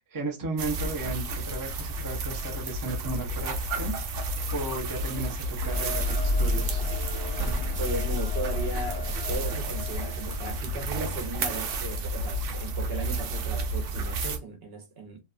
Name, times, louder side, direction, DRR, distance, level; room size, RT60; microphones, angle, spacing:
voice 1, 0.1-6.8, right 2 dB, 25° right, 0.4 m, -35 dB
sound 1, 0.6-14.4, right 2 dB, 90° right, 1.0 m, -32 dB
sound 2, 5.6-10.6, left 2 dB, 70° left, 1.0 m, -30 dB
voice 2, 7.8-15.2, right 3 dB, 60° right, 0.9 m, -36 dB
2.8 x 2.2 x 2.4 m
omnidirectional pair, 1.2 m